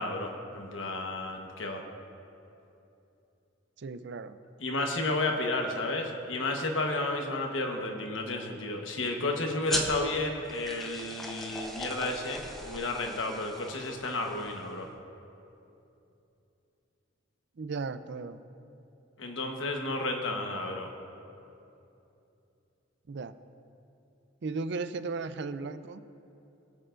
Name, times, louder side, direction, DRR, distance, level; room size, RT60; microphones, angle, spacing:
voice 1, 0.0-1.8 4.6-14.9 19.2-20.9, left 2 dB, 85° left, 2 dB, 1.2 m, -32 dB
voice 2, 3.8-4.4 7.3-7.4 17.6-18.4 23.1-23.3 24.4-26.0, right 4 dB, 60° right, 12 dB, 0.5 m, -36 dB
sound 1, 9.7-14.7, right 1 dB, ahead, 1.0 m, -39 dB
22.0 x 7.9 x 2.5 m, 2.8 s
head